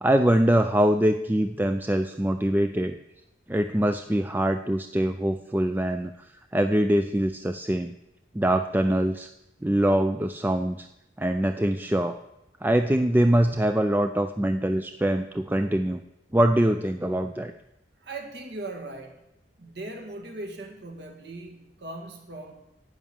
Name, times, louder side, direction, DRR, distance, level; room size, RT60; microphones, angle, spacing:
voice 1, 0.0-2.9 3.5-6.3 6.5-7.9 8.3-9.3 9.6-10.9 11.2-12.2 12.6-16.0 16.3-17.5, right 1 dB, 10° right, 8 dB, 0.4 m, -23 dB
voice 2, 18.0-19.2 19.6-22.5, right 2 dB, 65° right, 3 dB, 2.2 m, -39 dB
11.0 x 9.4 x 7.2 m, 0.88 s
head